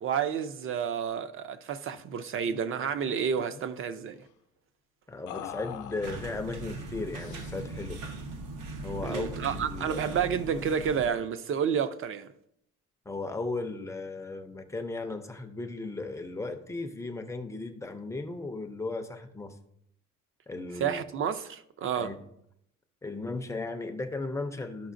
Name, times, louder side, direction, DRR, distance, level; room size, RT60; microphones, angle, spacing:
voice 1, 0.0-4.2 9.0-12.3 20.8-22.1, right 7 dB, 45° right, 0.5 m, -30 dB
sound 1, 1.9-2.1 2.4-2.6 2.9-3.7 5.3-6.5 7.1-7.8, left 10 dB, 70° left, 0.6 m, -44 dB
voice 2, 5.1-8.0 8.8-10.0 13.1-19.6 20.5-21.0 21.9-22.2 23.0-24.9, left 3 dB, 10° left, 0.4 m, -36 dB
sound 2, 6.0-11.1, right 2 dB, 85° right, 0.9 m, -39 dB
12.5 x 5.6 x 2.5 m
cardioid pair, 170°, 31 cm